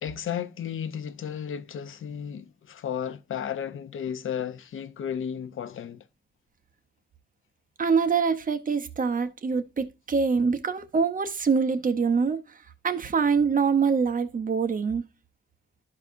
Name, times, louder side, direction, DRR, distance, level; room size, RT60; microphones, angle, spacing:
voice 1, 0.0-6.0, left 8 dB, 75° left, 0.6 m, -33 dB
voice 2, 7.8-12.4 12.8-15.0, right 5 dB, 40° right, 0.7 m, -24 dB
12.5 x 4.7 x 2.5 m
wide cardioid pair, 140°, 21 cm